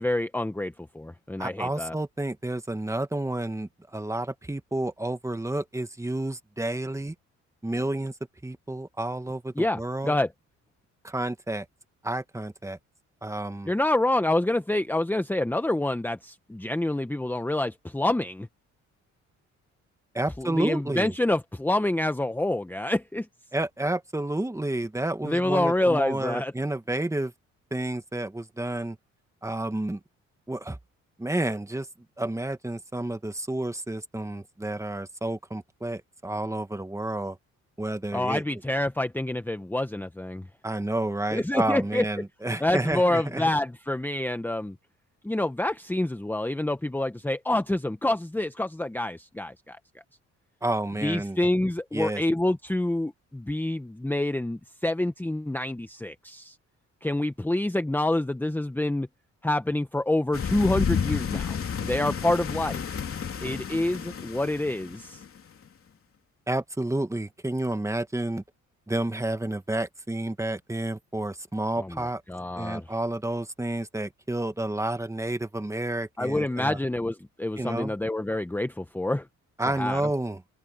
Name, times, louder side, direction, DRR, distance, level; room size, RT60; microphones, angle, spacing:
voice 1, 0.0-1.9 9.6-10.3 13.7-18.5 20.4-23.3 25.2-26.5 38.1-40.5 41.3-42.1 42.6-44.7 45.2-49.8 51.0-56.6 57.0-59.1 59.4-61.6 61.8-62.9 63.4-65.2 71.8-72.9 76.2-79.3 79.7-80.0, left 1 dB, 5° left, 1.1 m, -27 dB
voice 2, 1.4-7.1 7.6-8.1 8.4-10.1 11.0-11.6 12.0-12.8 13.2-13.7 20.1-21.1 23.5-27.3 27.7-29.0 29.4-30.0 30.5-30.8 31.2-31.9 32.2-37.4 37.8-38.4 40.6-43.5 50.6-51.4 51.9-52.2 66.5-68.4 68.9-72.2 72.6-76.8 77.6-77.9 79.6-80.4, right 1 dB, 10° right, 1.6 m, -30 dB
sound 1, 60.3-65.4, left 7 dB, 45° left, 3.1 m, -31 dB
cardioid pair, 90°, 30 cm